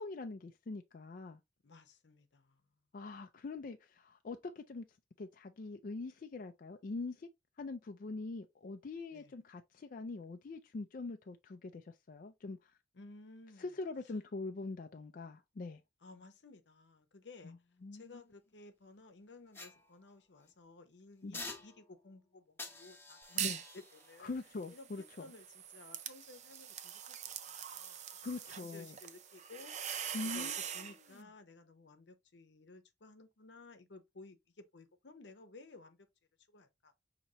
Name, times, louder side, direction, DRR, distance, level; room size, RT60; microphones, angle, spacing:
voice 1, 0.0-1.4 2.9-4.9 5.2-7.3 7.6-12.7 13.6-15.8 17.4-17.6 17.8-18.0 21.2-21.4 23.4-23.6 24.2-25.2 28.2-29.0 30.1-30.6, left 3 dB, 50° left, 0.4 m, -43 dB
voice 2, 1.6-2.6 9.1-9.3 12.9-13.8 16.0-17.5 17.9-24.3 24.7-28.2 28.6-29.9 30.2-36.0 36.5-36.9, left 3 dB, 85° left, 0.8 m, -56 dB
sound 1, 19.5-20.5 21.3-22.1 22.6-25.8 26.3-26.5, left 3 dB, 15° left, 0.8 m, -51 dB
sound 2, 23.2-23.7 24.1-30.9, right 9 dB, 40° right, 0.4 m, -43 dB
5.4 x 2.9 x 2.8 m
head